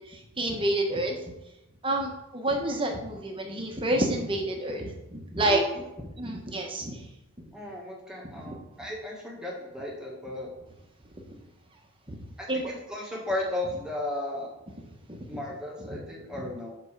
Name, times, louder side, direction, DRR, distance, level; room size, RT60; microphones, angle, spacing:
voice 1, 0.1-1.1 1.8-5.6 6.2-7.0 8.3-8.6 12.1-12.2 12.5-12.7 15.1-15.2 16.3-16.4, right 1 dB, 25° right, 2 dB, 1.1 m, -29 dB
voice 2, 5.4-5.8 7.5-10.5 12.4-14.5 15.3-16.7, left 1 dB, 5° right, -3 dB, 1.6 m, -35 dB
5.5 x 5.2 x 6.6 m, 0.93 s
head